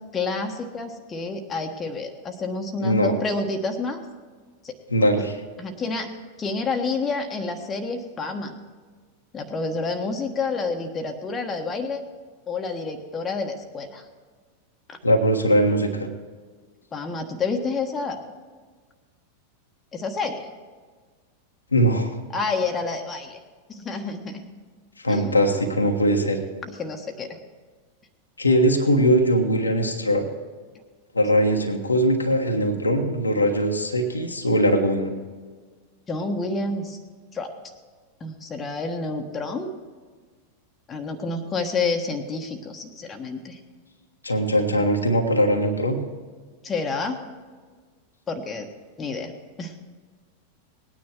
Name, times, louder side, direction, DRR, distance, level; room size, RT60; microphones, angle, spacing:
voice 1, 0.1-4.0 4.6-5.1 5.6-6.1 6.4-8.6 9.3-12.0 12.5-14.0 14.9-15.0 16.9-18.2 19.9-20.5 22.3-23.4 23.7-24.4 25.1-25.4 26.6-27.4 36.1-37.0 37.3-37.5 38.2-39.7 40.9-43.6 46.6-47.2 48.3-48.7 49.0-49.3 49.6-49.8, left 3 dB, 20° left, 4 dB, 1.4 m, -29 dB
voice 2, 2.8-3.1 4.9-5.4 15.0-16.1 21.7-22.2 25.0-26.4 28.4-30.2 31.1-35.1 44.2-46.0, equal, 80° left, 3 dB, 1.4 m, -21 dB
19.0 x 9.6 x 4.6 m, 1.5 s
figure-of-eight pair, 90°, 0 cm